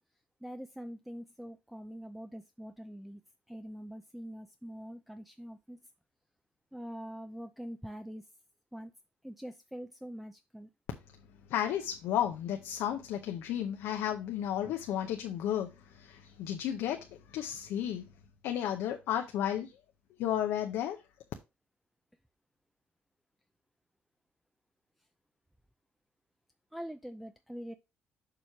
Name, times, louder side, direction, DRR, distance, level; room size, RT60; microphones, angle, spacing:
voice 1, 0.4-3.2 3.5-5.8 6.7-8.2 8.7-8.9 9.2-10.7 26.7-27.7, equal, 5° right, 0.5 m, -44 dB
voice 2, 11.5-18.1 18.4-19.8 20.2-21.0, left 10 dB, 90° left, 0.7 m, -33 dB
6.8 x 3.1 x 5.8 m
cardioid pair, 95°, 4 cm